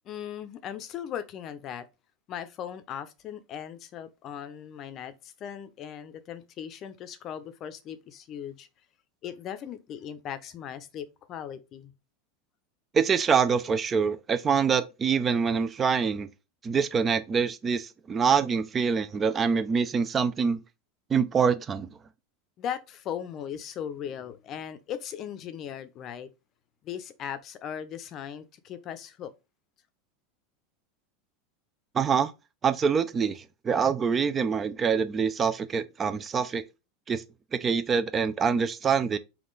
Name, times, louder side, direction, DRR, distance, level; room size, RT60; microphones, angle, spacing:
voice 1, 0.0-1.8 2.3-8.7 9.2-11.9 22.6-26.3 26.8-29.3, left 9 dB, 45° left, 0.6 m, -38 dB
voice 2, 12.9-16.3 16.6-20.6 21.1-21.9 31.9-32.3 32.6-36.6 37.1-37.2 37.5-39.2, right 6 dB, 30° right, 0.4 m, -25 dB
3.6 x 2.4 x 3.9 m
hypercardioid pair, 105°, 0 cm